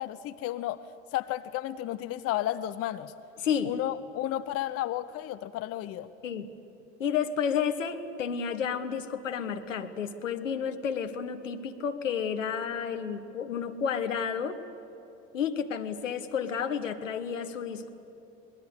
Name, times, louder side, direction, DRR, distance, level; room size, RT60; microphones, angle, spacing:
voice 1, 0.0-3.1 3.6-6.1, left 13 dB, 40° left, 14 dB, 0.7 m, -33 dB
voice 2, 3.4-3.7 6.2-6.5 7.0-14.6 15.3-17.9, left 7 dB, 75° left, 9 dB, 1.3 m, -31 dB
25.0 x 20.0 x 8.4 m, 2.7 s
figure-of-eight pair, 70°, 38 cm